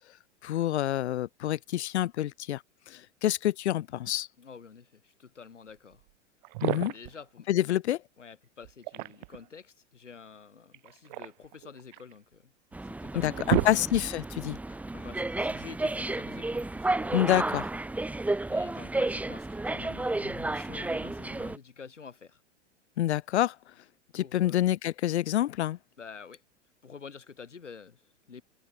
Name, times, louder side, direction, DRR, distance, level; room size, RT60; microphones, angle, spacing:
voice 1, 0.4-2.6 2.9-4.3 6.6-6.9 7.5-8.0 13.2-14.6 17.1-17.7 23.0-23.5 24.1-25.8, left 13 dB, 65° left, 1.0 m, -27 dB
voice 2, 4.4-6.1 6.9-7.5 8.2-12.5 12.8-13.9 14.9-17.5 18.5-22.4 24.1-24.6 26.0-26.4 26.8-28.4, left 6 dB, 85° left, 4.4 m, -48 dB
sound 1, 6.0-6.1 6.4-7.2 8.6-9.5 10.7-12.1 12.7-12.8 13.1-14.3, right 25 dB, 40° right, 0.4 m, -32 dB
sound 2, 12.7-21.6, right 2 dB, 5° right, 0.8 m, -32 dB
figure-of-eight pair, 95°, 35 cm